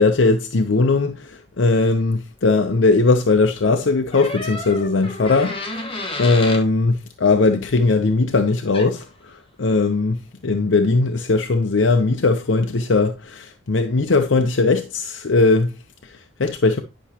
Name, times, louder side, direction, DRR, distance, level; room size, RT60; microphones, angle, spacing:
voice 1, 0.0-5.9 6.2-10.2 10.4-15.7 16.0-16.8, left 3 dB, 80° left, 0.7 m, -19 dB
sound 1, 4.1-6.7 8.7-8.9, left 2 dB, 30° left, 1.3 m, -31 dB
10.0 x 6.0 x 2.8 m
head